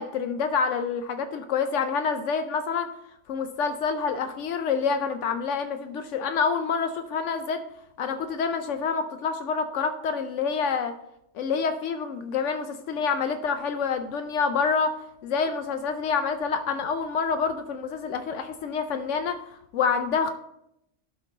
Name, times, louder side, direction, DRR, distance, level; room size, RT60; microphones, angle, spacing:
voice 1, 0.0-2.9 3.3-7.6 8.0-10.9 11.3-14.9 15.2-19.4 19.7-20.3, left 5 dB, 80° left, 8 dB, 0.9 m, -27 dB
12.0 x 4.5 x 3.8 m, 0.79 s
omnidirectional pair, 1.3 m